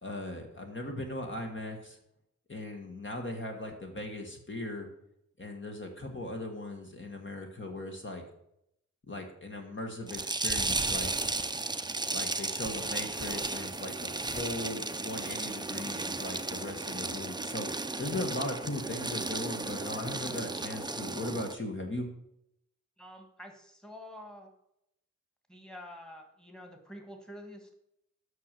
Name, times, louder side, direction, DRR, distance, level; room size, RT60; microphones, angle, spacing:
voice 1, 0.0-2.0 2.5-4.9 5.4-8.2 9.1-11.1 12.1-22.1, left 1 dB, 40° left, 2 dB, 1.5 m, -38 dB
sound 1, 10.1-21.5, right 2 dB, 15° right, 0.5 m, -34 dB
voice 2, 23.0-24.5 25.5-27.7, left 1 dB, ahead, 4 dB, 1.8 m, -48 dB
8.2 x 6.4 x 7.4 m, 0.78 s
wide cardioid pair, 110°, 30 cm